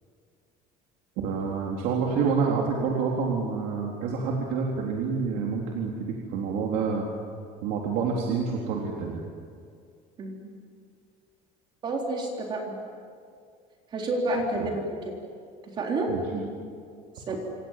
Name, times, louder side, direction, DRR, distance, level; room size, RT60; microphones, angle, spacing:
voice 1, 1.2-7.1 7.6-9.3 14.6-14.7 16.1-16.2, right 5 dB, 70° right, -1 dB, 3.7 m, -28 dB
voice 2, 11.8-12.8 13.9-15.1 15.6-16.5 17.2-17.4, right 2 dB, 30° right, 0 dB, 3.9 m, -29 dB
27.5 x 26.5 x 7.5 m, 2.2 s
cardioid pair, 175°, 15 cm